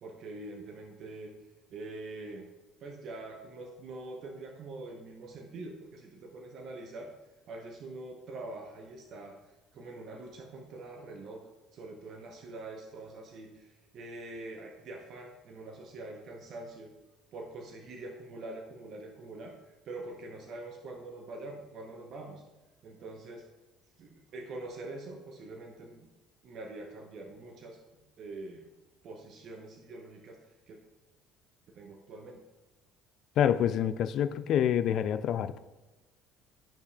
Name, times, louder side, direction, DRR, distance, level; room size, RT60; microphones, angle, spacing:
voice 1, 0.0-1.3 1.7-2.5 2.8-7.1 7.5-9.4 9.7-16.9 17.3-22.4 22.8-23.5 24.0-26.1 26.4-28.7 29.0-30.8 31.7-32.4, right 2 dB, 55° right, 3 dB, 0.9 m, -44 dB
voice 2, 33.4-35.6, left 9 dB, 60° left, 12 dB, 0.3 m, -27 dB
12.0 x 5.4 x 2.3 m, 1.1 s
hypercardioid pair, 60°, 0 cm